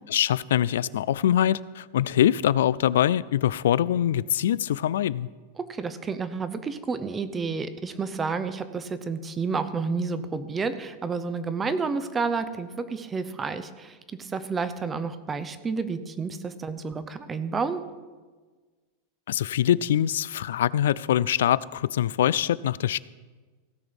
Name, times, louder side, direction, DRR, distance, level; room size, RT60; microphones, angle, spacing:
voice 1, 0.1-5.3 19.3-23.0, left 11 dB, 85° left, 20 dB, 0.3 m, -23 dB
voice 2, 5.6-17.8, right 4 dB, 15° right, 12 dB, 0.6 m, -30 dB
17.0 x 6.2 x 5.2 m, 1.4 s
supercardioid pair, 155°, 0 cm